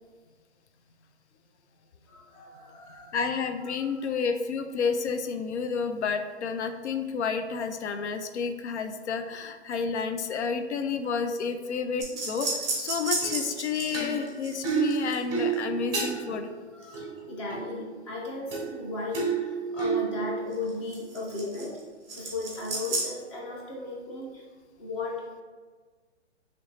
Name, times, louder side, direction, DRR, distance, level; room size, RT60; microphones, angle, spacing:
voice 1, 2.1-3.2 3.8-4.2 16.0-16.3 16.7-21.8 22.1-24.4 24.8-25.4, left 3 dB, 25° left, -3 dB, 0.8 m, -36 dB
voice 2, 3.1-16.5, left 5 dB, 75° left, 8 dB, 0.5 m, -30 dB
Back and Forth (Plunking and Shaker), 12.0-16.4 16.9-17.8 18.5-18.9 19.1-21.8 22.1-23.0, right 5 dB, 10° right, 0.7 m, -30 dB
3.1 x 3.0 x 4.0 m, 1.5 s
hypercardioid pair, 155°, 35 cm